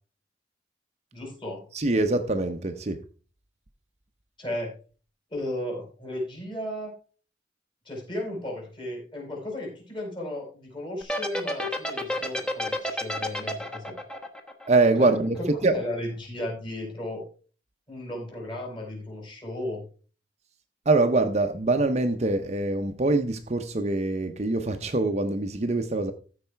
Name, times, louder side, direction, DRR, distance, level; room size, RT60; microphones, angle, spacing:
voice 1, 1.1-1.6 4.4-4.7 5.3-6.9 7.8-14.0 15.0-17.3 17.9-19.8, left 1 dB, 25° left, 4.8 m, -34 dB
voice 2, 1.7-3.0 14.7-15.4 15.6-15.7 20.9-26.1, right 2 dB, 40° right, 0.7 m, -24 dB
sound 1, 11.0-15.4, left 1 dB, 5° left, 1.1 m, -30 dB
14.0 x 4.9 x 4.5 m
head